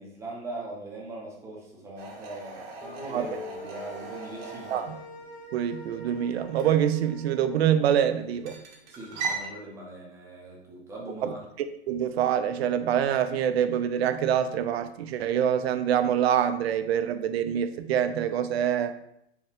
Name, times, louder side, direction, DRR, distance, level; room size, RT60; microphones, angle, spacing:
voice 1, 0.0-4.9 8.9-11.4, right 2 dB, 10° right, -4 dB, 0.6 m, -41 dB
sound 1, 2.0-9.5, right 5 dB, 40° right, 0.8 m, -40 dB
sound 2, 2.8-7.7, equal, 50° left, 0.8 m, -43 dB
voice 2, 5.5-8.6 11.2-11.3 11.9-18.9, right 9 dB, 65° right, 10 dB, 0.5 m, -25 dB
4.2 x 2.3 x 3.6 m, 0.75 s
hypercardioid pair, 145°, 34 cm